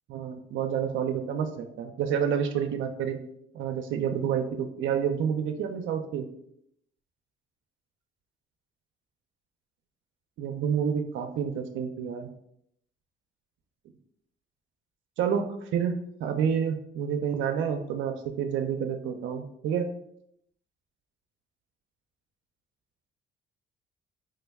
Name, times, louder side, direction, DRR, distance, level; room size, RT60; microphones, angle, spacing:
voice 1, 0.1-3.2 3.5-6.2 10.4-12.3 15.2-19.9, right 7 dB, 75° right, 5 dB, 0.4 m, -29 dB
3.2 x 2.1 x 3.4 m, 0.72 s
cardioid pair, 90°, 20 cm